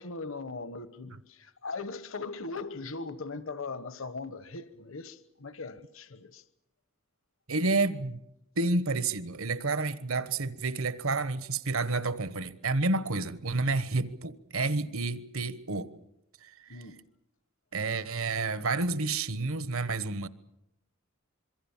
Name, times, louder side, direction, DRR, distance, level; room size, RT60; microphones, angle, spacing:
voice 1, 0.0-6.4 16.7-17.0, left 3 dB, 65° left, 1.2 m, -39 dB
voice 2, 7.5-8.2 8.6-15.9 16.4-16.8 17.7-20.3, right 3 dB, 70° right, 1.2 m, -30 dB
26.0 x 23.0 x 7.3 m
head